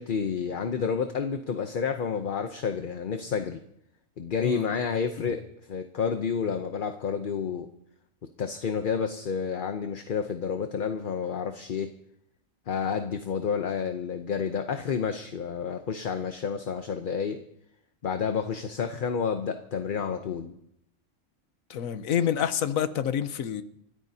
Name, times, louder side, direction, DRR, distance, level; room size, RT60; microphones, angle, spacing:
voice 1, 0.0-3.6 4.2-5.4 5.7-7.7 8.4-11.9 12.7-17.4 18.0-20.6, left 6 dB, 45° left, 0.8 m, -30 dB
voice 2, 21.7-23.6, left 9 dB, 85° left, 1.2 m, -28 dB
30.0 x 13.5 x 2.8 m
omnidirectional pair, 1.4 m